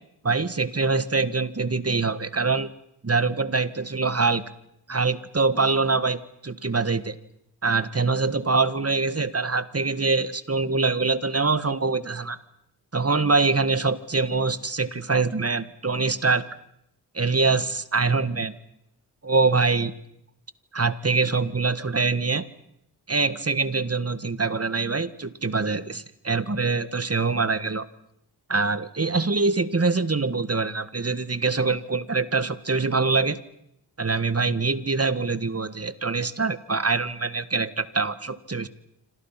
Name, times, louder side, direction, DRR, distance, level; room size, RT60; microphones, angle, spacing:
voice 1, 0.2-2.7 3.0-4.4 4.9-7.2 7.6-12.4 12.9-16.4 17.1-18.5 19.2-19.9 20.7-22.4 23.1-27.9 28.5-33.4 34.0-38.7, right 4 dB, 35° right, 14 dB, 1.6 m, -24 dB
27.0 x 26.5 x 5.9 m, 0.79 s
cardioid pair, 55°, 41 cm